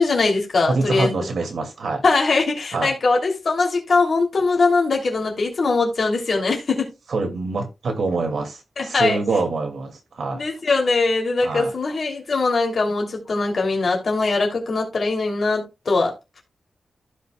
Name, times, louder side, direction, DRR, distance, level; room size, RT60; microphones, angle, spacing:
voice 1, 0.0-1.1 2.0-6.9 8.8-9.2 10.3-16.1, left 3 dB, 50° left, 2.8 m, -21 dB
voice 2, 0.7-2.0 2.7-2.9 7.1-10.4 11.4-11.7, right 3 dB, 75° right, 2.2 m, -25 dB
15.0 x 5.4 x 2.3 m
wide cardioid pair, 175°, 0 cm